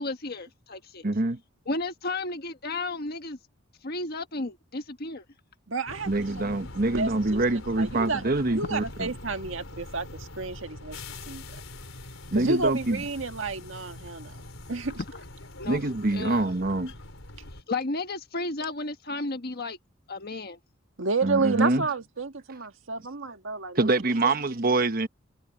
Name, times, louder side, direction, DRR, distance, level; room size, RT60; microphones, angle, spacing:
voice 1, 0.0-1.0 1.7-3.4 3.8-5.2 15.6-15.8 16.1-16.4 17.5-19.8 20.1-20.6, left 2 dB, 50° left, 1.5 m, -33 dB
voice 2, 1.0-1.4 6.1-9.1 12.3-13.0 15.6-16.9 21.2-21.9 23.7-25.1, right 2 dB, 50° right, 1.2 m, -25 dB
voice 3, 5.7-6.6 6.9-11.4 12.3-14.3 14.7-15.0 21.0-24.3, right 3 dB, 75° right, 1.7 m, -31 dB
sound 1, 5.9-17.6, left 2 dB, 90° left, 4.3 m, -43 dB
head